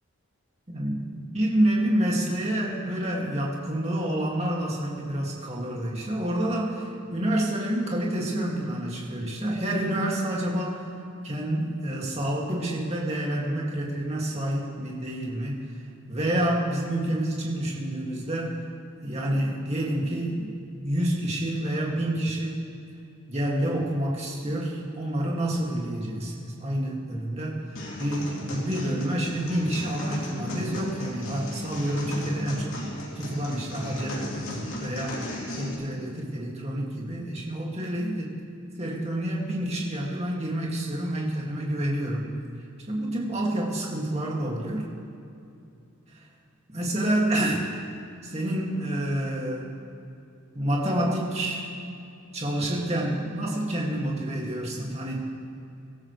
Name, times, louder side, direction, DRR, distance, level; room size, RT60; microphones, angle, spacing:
voice 1, 0.7-10.8 11.2-15.6 16.1-18.6 19.0-20.5 20.8-22.6 23.3-27.6 28.0-32.8 33.2-34.4 34.8-35.2 35.6-38.3 38.8-42.3 42.9-44.8 46.7-47.6 48.2-49.7 50.5-51.7 52.3-55.2, right 1 dB, 30° right, -3 dB, 2.3 m, -28 dB
sound 1, 27.8-35.7, left 1 dB, 70° left, 2.8 m, -36 dB
23.0 x 13.5 x 3.3 m, 2.6 s
head